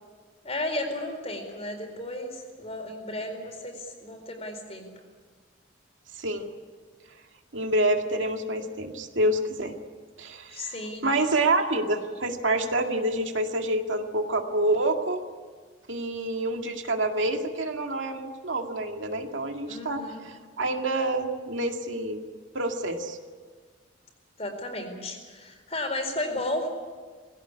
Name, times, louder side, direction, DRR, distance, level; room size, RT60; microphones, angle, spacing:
voice 1, 0.4-4.9 10.5-11.0 19.7-20.3 24.4-26.7, left 1 dB, 35° left, 4 dB, 4.3 m, -33 dB
voice 2, 6.1-6.5 7.5-9.7 10.2-10.7 11.0-15.2 15.9-22.2 22.5-23.2, right 1 dB, 85° right, 4 dB, 2.2 m, -27 dB
21.5 x 16.5 x 9.8 m, 1.5 s
head